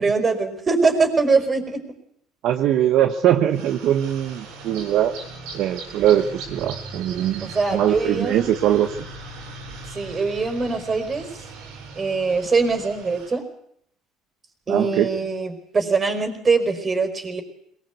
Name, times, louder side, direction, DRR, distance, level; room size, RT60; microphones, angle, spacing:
voice 1, 0.0-1.8 7.4-8.4 9.9-11.3 12.0-13.4 14.7-17.4, right 4 dB, 25° right, 7 dB, 4.9 m, -22 dB
voice 2, 2.4-5.1 5.5-9.0 14.7-15.1, right 11 dB, 65° right, 7 dB, 1.2 m, -21 dB
sound 1, 3.5-13.4, right 3 dB, 85° right, 7.0 m, -39 dB
22.0 x 20.5 x 8.3 m, 0.70 s
cardioid pair, 110°, 0 cm